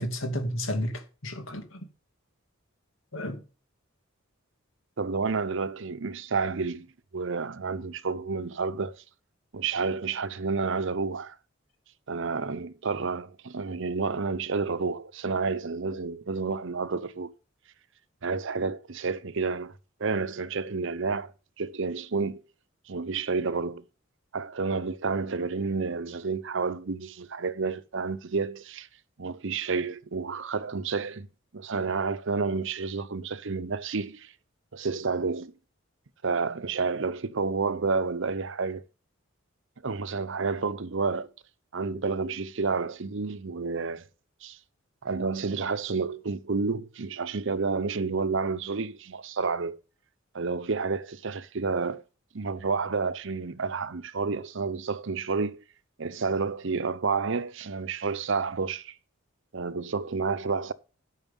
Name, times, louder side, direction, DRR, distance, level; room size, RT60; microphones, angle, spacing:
voice 1, 0.0-1.9 3.1-3.4, equal, 75° left, 2.4 m, -32 dB
voice 2, 5.0-9.0 9.5-11.4 12.1-17.3 18.2-19.7 20.0-21.3 21.6-22.4 22.9-23.9 24.3-28.9 29.2-31.3 31.5-34.3 34.7-35.5 36.2-38.8 39.8-41.3 41.7-44.1 44.4-44.6 45.0-49.8 50.3-52.0 52.3-55.6 56.0-58.9 59.5-60.7, right 4 dB, 65° right, 0.8 m, -30 dB
11.0 x 6.5 x 5.4 m
head